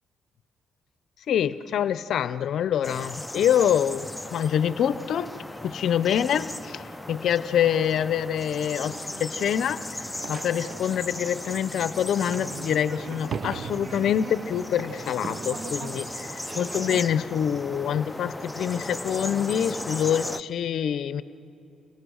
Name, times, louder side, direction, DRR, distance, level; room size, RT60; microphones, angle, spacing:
voice 1, 1.3-5.3 5.6-21.2, left 9 dB, 70° left, 15 dB, 0.6 m, -26 dB
sound 1, 2.8-20.4, left 1 dB, 10° left, 0.5 m, -37 dB
sound 2, 10.0-17.0, right 6 dB, 55° right, 0.7 m, -39 dB
29.5 x 26.0 x 6.3 m, 2.9 s
cardioid pair, 90°, 0 cm